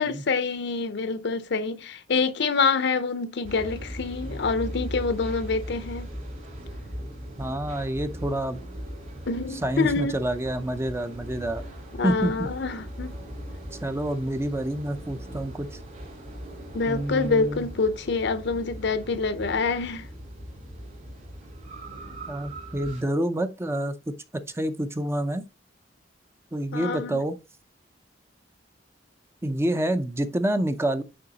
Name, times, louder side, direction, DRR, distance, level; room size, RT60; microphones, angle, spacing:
voice 1, 0.0-6.1 9.3-10.1 11.9-13.1 16.7-20.1 26.7-27.2, left 4 dB, 65° left, 0.6 m, -26 dB
sound 1, 3.4-23.0, equal, 45° right, 3.4 m, -39 dB
voice 2, 7.4-8.6 9.6-11.6 12.0-12.5 13.8-15.8 16.9-17.7 22.3-24.1 24.5-25.4 26.5-27.4 29.4-31.0, right 1 dB, 15° right, 0.5 m, -28 dB
8.7 x 3.8 x 2.8 m
head